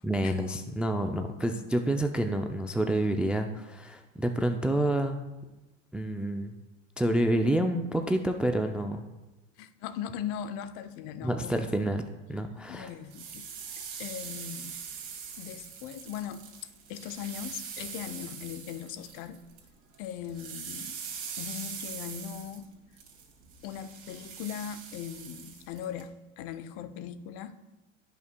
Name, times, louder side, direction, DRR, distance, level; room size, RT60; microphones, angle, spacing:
voice 1, 0.0-5.2 5.9-6.5 7.0-9.0 11.2-12.9, right 1 dB, 5° right, 6 dB, 0.3 m, -28 dB
voice 2, 9.6-11.7 12.7-13.5 14.0-14.8 15.4-16.5 16.9-19.4 20.0-21.0 21.4-22.7 23.6-27.6, left 9 dB, 55° left, 11 dB, 0.7 m, -39 dB
sound 1, 12.9-19.7 19.9-26.0, right 7 dB, 40° right, 2.3 m, -42 dB
15.5 x 5.7 x 2.2 m, 1.1 s
hypercardioid pair, 95°, 38 cm